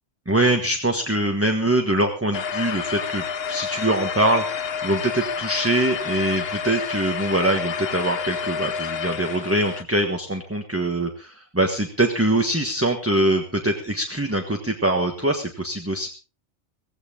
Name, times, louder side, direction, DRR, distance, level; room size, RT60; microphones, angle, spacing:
voice 1, 0.3-4.4 4.8-16.1, right 1 dB, 10° right, 4 dB, 1.4 m, -23 dB
sound 1, 2.3-9.8, left 6 dB, 60° left, 1.1 m, -29 dB
17.0 x 16.0 x 3.7 m, 0.34 s
omnidirectional pair, 1.2 m